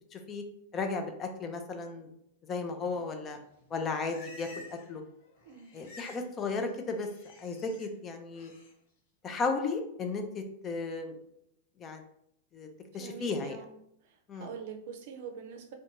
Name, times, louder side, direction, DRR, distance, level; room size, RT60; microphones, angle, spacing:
voice 1, 0.1-0.4 0.7-2.1 2.5-3.4 3.7-5.0 5.7-7.1 7.4-8.5 9.2-11.1 11.8-12.0 12.5-12.7 12.9-13.6 14.3-14.5, left 4 dB, 25° left, 6 dB, 0.4 m, -34 dB
Livestock farm animals working animals, 3.5-5.0 5.2-6.3 6.6-7.9 8.3-8.7, left 2 dB, 65° left, 0.8 m, -52 dB
voice 2, 5.4-5.7 12.9-13.7 14.0-15.7, right 6 dB, 60° right, 4 dB, 0.5 m, -45 dB
2.6 x 2.2 x 2.8 m, 0.75 s
supercardioid pair, 135°, 0 cm